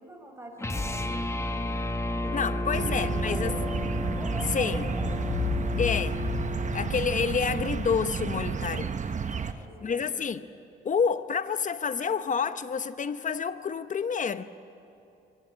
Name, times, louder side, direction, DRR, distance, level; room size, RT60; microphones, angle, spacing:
voice 1, 0.0-1.8 2.1-3.8 4.2-5.1 8.3-10.2, right 1 dB, 10° right, 2 dB, 5.7 m, -44 dB
sound 1, 0.6-7.0, left 1 dB, 15° left, 1.3 m, -32 dB
voice 2, 2.3-3.5 4.5-4.8 5.8-6.2 6.7-8.9 9.8-10.4 10.8-14.4, left 6 dB, 40° left, 12 dB, 0.9 m, -28 dB
sound 2, 2.7-9.5, right 6 dB, 40° right, 1.0 m, -32 dB
sound 3, 5.0-7.8, left 9 dB, 70° left, 0.6 m, -34 dB
24.5 x 18.5 x 8.7 m, 2.8 s
cardioid pair, 90°, 20 cm